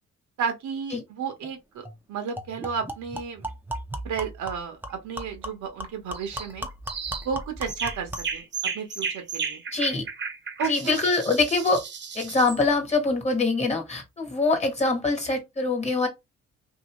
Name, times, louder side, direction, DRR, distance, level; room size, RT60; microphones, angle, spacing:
voice 1, 0.4-3.5 4.0-6.7 7.2-8.4 8.7-9.6 10.6-11.0, right 6 dB, 75° right, 1.0 m, -32 dB
sound 1, 1.4-1.5 1.8-2.0 2.4-8.4, right 1 dB, 5° right, 0.6 m, -37 dB
sound 2, 6.1-6.5 6.9-7.3 7.7-12.6, right 5 dB, 40° right, 0.8 m, -34 dB
voice 2, 9.7-10.0 10.7-11.8 12.1-16.1, left 3 dB, 20° left, 1.3 m, -24 dB
2.8 x 2.7 x 3.0 m
cardioid pair, 90°, 30 cm